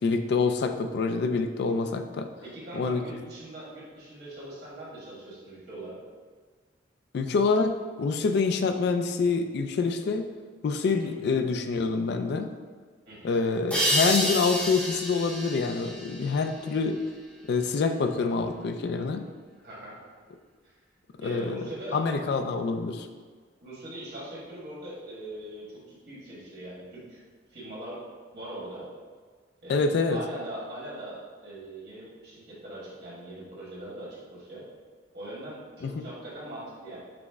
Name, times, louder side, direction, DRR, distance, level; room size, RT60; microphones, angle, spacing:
voice 1, 0.0-2.3 2.7-3.0 7.1-10.3 10.6-12.5 13.2-17.0 17.5-19.2 21.2-21.6 21.9-23.1 29.7-30.2 35.8-35.9, left 4 dB, 60° left, 7 dB, 0.3 m, -26 dB
voice 2, 2.4-6.0 10.9-11.1 13.1-13.4 19.6-20.0 20.6-20.8 21.2-22.0 23.6-27.2 27.5-28.0 28.3-28.9 29.6-34.6 35.1-37.0, right 1 dB, 60° right, -7 dB, 1.5 m, -41 dB
sound 1, 13.7-17.1, equal, 10° left, 0.7 m, -29 dB
5.9 x 2.0 x 3.4 m, 1.5 s
head